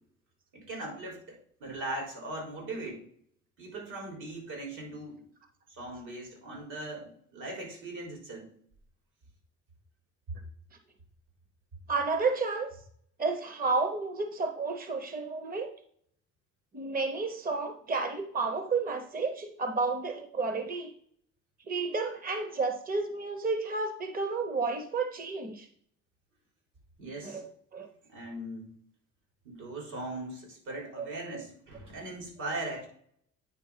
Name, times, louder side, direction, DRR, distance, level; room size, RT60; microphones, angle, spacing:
voice 1, 0.5-3.0 3.6-5.2 5.7-8.5 27.0-27.4 28.1-28.7 29.4-32.9, right 2 dB, 80° right, 0 dB, 3.9 m, -39 dB
voice 2, 11.9-12.7 13.2-15.7 16.7-20.9 21.7-25.7 27.2-27.4 27.7-27.9 31.0-31.1 31.3-31.4, right 4 dB, 30° right, 7 dB, 0.8 m, -31 dB
9.4 x 3.7 x 5.6 m, 0.63 s
cardioid pair, 90°, 30 cm